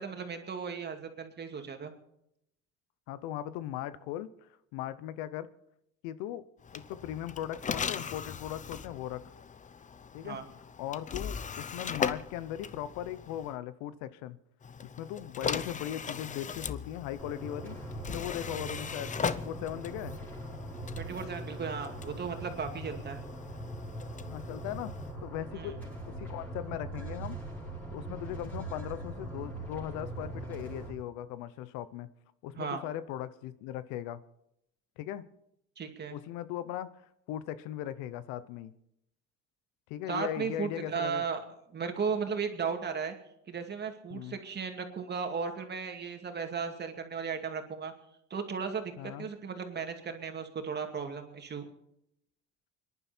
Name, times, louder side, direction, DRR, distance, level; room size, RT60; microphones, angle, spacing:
voice 1, 0.0-1.9 10.2-10.5 21.0-23.2 25.5-25.7 32.6-32.8 35.8-36.2 40.1-41.4 41.7-43.1 43.5-47.9 48.3-51.7, right 6 dB, 35° right, 5 dB, 2.4 m, -36 dB
voice 2, 3.1-5.5 6.0-6.4 6.7-9.2 10.1-10.4 10.8-14.4 14.8-17.8 18.1-20.2 24.2-24.9 25.2-25.8 26.1-27.4 27.9-32.1 32.4-34.2 35.0-35.2 36.1-36.9 37.3-38.7 39.9-41.2 44.1-44.4 49.0-49.3, left 12 dB, 90° left, 16 dB, 0.9 m, -38 dB
sound 1, 6.6-13.6 14.6-25.1, left 6 dB, 25° left, 0.7 m, -39 dB
sound 2, 17.2-30.9, right 2 dB, 5° left, 4.9 m, -41 dB
24.5 x 11.0 x 4.4 m, 0.79 s
cardioid pair, 105°, 30 cm